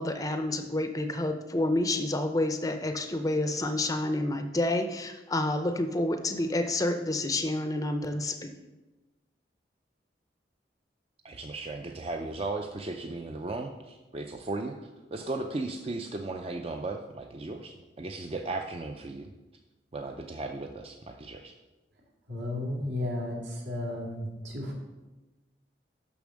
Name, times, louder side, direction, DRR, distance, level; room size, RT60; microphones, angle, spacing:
voice 1, 0.0-8.5, left 1 dB, 20° left, 7 dB, 0.5 m, -29 dB
voice 2, 11.2-19.3 19.9-21.5, right 2 dB, 30° right, 4 dB, 0.4 m, -36 dB
voice 3, 22.3-24.8, left 1 dB, 75° right, -2 dB, 2.2 m, -33 dB
7.0 x 6.0 x 6.3 m, 1.1 s
head